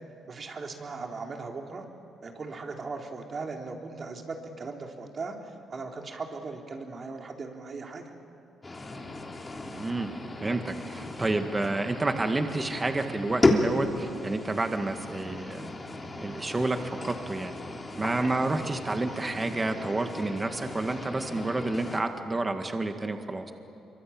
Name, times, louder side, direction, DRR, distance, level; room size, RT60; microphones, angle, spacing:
voice 1, 0.3-1.8 2.2-8.1 20.9-21.0, right 4 dB, 40° right, 2 dB, 3.6 m, -38 dB
sound 1, 8.6-22.0, left 2 dB, 25° left, 3.2 m, -33 dB
voice 2, 9.6-10.1 10.4-15.7 16.2-17.6 18.0-23.5, right 2 dB, 20° right, 6 dB, 1.8 m, -30 dB
26.0 x 24.0 x 8.8 m, 2.9 s
cardioid pair, 90°, 0 cm